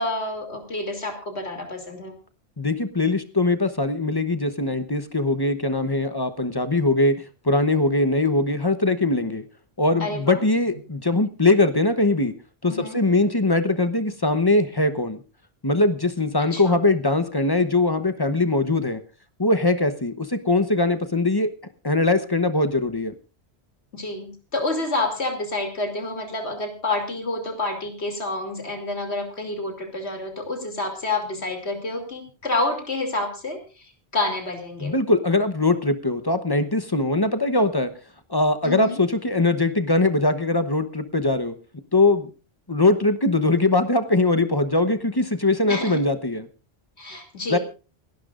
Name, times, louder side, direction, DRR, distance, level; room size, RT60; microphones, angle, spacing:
voice 1, 0.0-2.2 10.0-10.4 12.7-13.0 16.4-16.8 23.9-35.0 38.6-39.0 45.7-46.0 47.0-47.6, left 2 dB, 90° left, 4 dB, 3.1 m, -29 dB
voice 2, 2.6-7.2 7.4-9.4 9.8-12.3 12.6-15.2 15.6-19.0 19.4-21.5 21.8-23.1 34.8-37.9 38.3-41.5 41.9-42.3 42.7-46.5 47.5-47.6, left 2 dB, 25° left, 10 dB, 0.9 m, -21 dB
28.5 x 11.5 x 2.5 m, 0.34 s
omnidirectional pair, 1.1 m